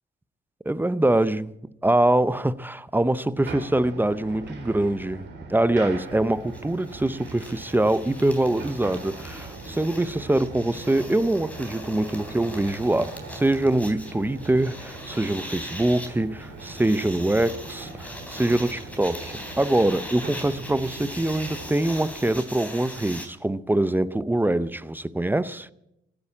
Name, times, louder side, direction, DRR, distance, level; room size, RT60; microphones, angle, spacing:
voice 1, 0.7-1.5 1.8-25.7, right 1 dB, 10° right, 0.6 m, -24 dB
sound 1, 3.4-21.7, right 3 dB, 65° right, 3.7 m, -41 dB
sound 2, 6.0-6.1 6.3-23.3, equal, 5° left, 3.4 m, -40 dB
16.0 x 9.8 x 8.6 m
cardioid pair, 90°, 20 cm